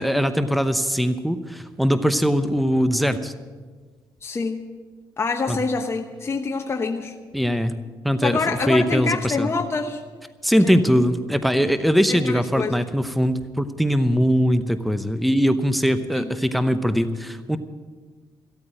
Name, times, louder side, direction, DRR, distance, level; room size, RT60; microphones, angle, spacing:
voice 1, 0.0-3.3 5.5-5.6 7.3-7.7 8.0-9.5 10.4-17.6, equal, ahead, 11 dB, 0.8 m, -21 dB
voice 2, 4.2-4.7 5.2-7.2 8.2-10.0 10.6-11.0 12.1-12.8 16.1-16.3, left 4 dB, 30° left, 3 dB, 1.0 m, -26 dB
15.0 x 8.6 x 8.8 m, 1.5 s
cardioid pair, 90°, 8 cm